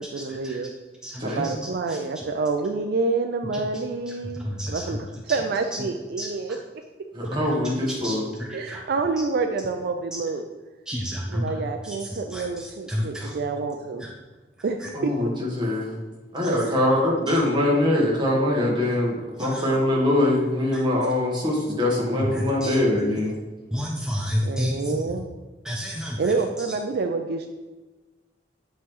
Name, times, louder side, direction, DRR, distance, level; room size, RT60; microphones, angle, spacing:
voice 1, 0.0-0.7 1.2-6.6 8.5-10.4 11.3-14.1 14.6-14.8 15.0-15.1 16.5-16.8 24.4-25.3 26.2-27.5, right 4 dB, 60° right, 6 dB, 0.4 m, -28 dB
voice 2, 1.0-1.5 4.4-4.8 6.2-6.3 7.3-7.5 8.0-8.8 10.9-11.5 12.3-12.4 12.9-13.3 19.4-19.6 22.1-22.7 23.7-24.7 25.7-26.2, equal, 5° right, -2 dB, 0.5 m, -29 dB
voice 3, 7.1-8.2 14.9-15.9 16.3-23.3, left 1 dB, 25° right, -4 dB, 1.4 m, -23 dB
8.5 x 3.1 x 3.7 m, 1.2 s
head